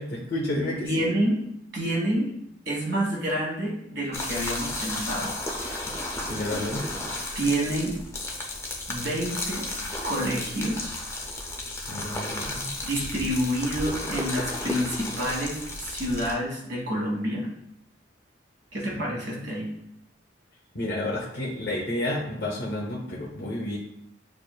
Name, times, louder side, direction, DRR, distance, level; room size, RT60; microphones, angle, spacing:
voice 1, 0.0-1.1 6.3-6.9 11.9-12.8 18.9-19.4 20.7-23.8, left 1 dB, 55° left, -3 dB, 0.7 m, -31 dB
voice 2, 0.8-1.4 1.7-2.3 2.6-5.4 7.3-8.0 8.9-9.7 10.0-11.1 12.8-17.5 18.7-19.7, right 1 dB, 65° right, -4 dB, 1.5 m, -28 dB
sound 1, 4.1-16.3, left 1 dB, 15° left, 0.4 m, -33 dB
6.3 x 2.5 x 2.2 m, 0.77 s
head